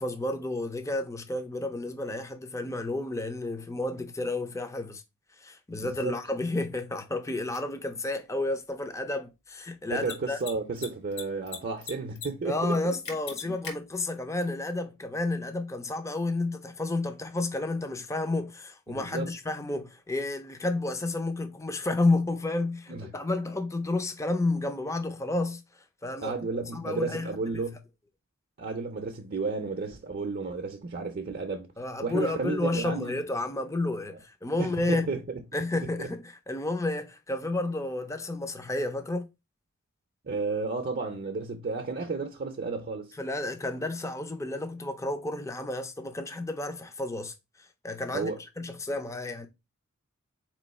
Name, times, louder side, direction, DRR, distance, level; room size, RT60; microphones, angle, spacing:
voice 1, 0.0-5.0 5.4-10.4 12.4-25.6 26.0-26.4 26.7-27.3 31.8-35.1 35.5-39.3 43.2-47.3 47.8-49.5, left 2 dB, 15° left, 0.5 m, -31 dB
voice 2, 5.8-6.1 9.9-13.0 13.4-13.5 18.9-19.3 22.9-23.1 26.2-27.8 28.6-31.7 32.0-33.2 34.6-35.2 35.7-36.1 40.2-43.1 48.1-48.4, right 4 dB, 45° right, 0.5 m, -32 dB
Mechanisms, 7.5-7.6 9.9-10.1 10.4-10.5 10.8-11.6 11.8-12.3 12.5-12.6 13.0-13.7, left 6 dB, 55° left, 1.2 m, -37 dB
4.0 x 3.0 x 4.1 m
head